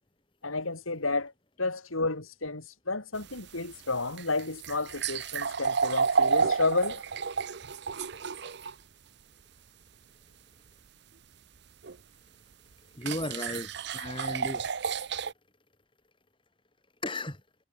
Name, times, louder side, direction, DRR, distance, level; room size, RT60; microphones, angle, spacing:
voice 1, 0.4-1.3 1.6-7.0, left 3 dB, 90° left, 4.3 m, -31 dB
sound 1, 3.1-8.7 11.8-11.9 13.0-15.3, right 5 dB, 55° right, 0.7 m, -30 dB
voice 2, 12.9-14.6 17.0-17.4, left 1 dB, 25° left, 5.0 m, -35 dB
head